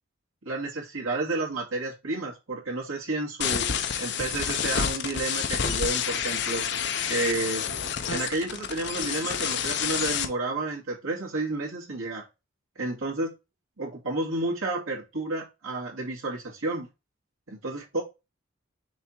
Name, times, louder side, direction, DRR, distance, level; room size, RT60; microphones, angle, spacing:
voice 1, 0.4-3.7 4.0-6.7 7.1-7.7 8.1-12.3 12.8-13.3 13.8-16.9 17.5-18.0, right 2 dB, 85° right, 2.4 m, -31 dB
sound 1, 3.4-10.3, left 7 dB, 55° left, 0.7 m, -29 dB
6.3 x 3.5 x 4.4 m
head